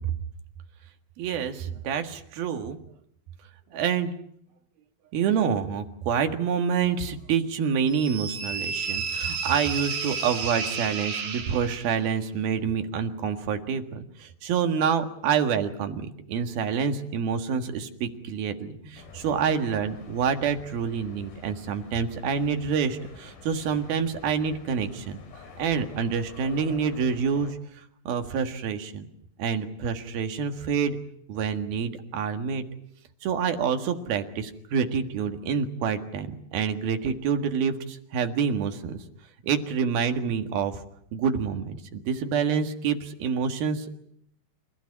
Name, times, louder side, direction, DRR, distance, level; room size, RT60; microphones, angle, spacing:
voice 1, 1.2-2.8 3.7-4.1 5.1-25.2 25.6-29.1 29.4-31.0 31.3-32.6 33.2-39.0 39.4-40.7 41.1-44.0, right 6 dB, 85° right, 6 dB, 3.6 m, -27 dB
sound 1, 7.9-12.0, right 5 dB, 50° right, 2.9 m, -32 dB
sound 2, 18.9-27.5, left 5 dB, 75° left, 5.0 m, -48 dB
28.5 x 15.5 x 9.7 m, 0.70 s
omnidirectional pair, 4.2 m